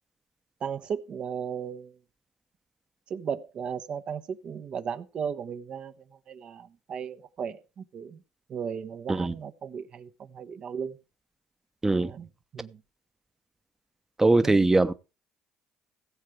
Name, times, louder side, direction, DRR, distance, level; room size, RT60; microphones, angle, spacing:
voice 1, 0.6-2.0 3.1-5.9 6.3-8.2 8.5-11.0 12.0-12.3 12.5-12.8 14.4-14.6, right 7 dB, 55° right, 1.1 m, -36 dB
voice 2, 14.2-14.9, right 2 dB, 20° right, 0.9 m, -21 dB
16.0 x 7.6 x 4.7 m
hypercardioid pair, 55°, 2 cm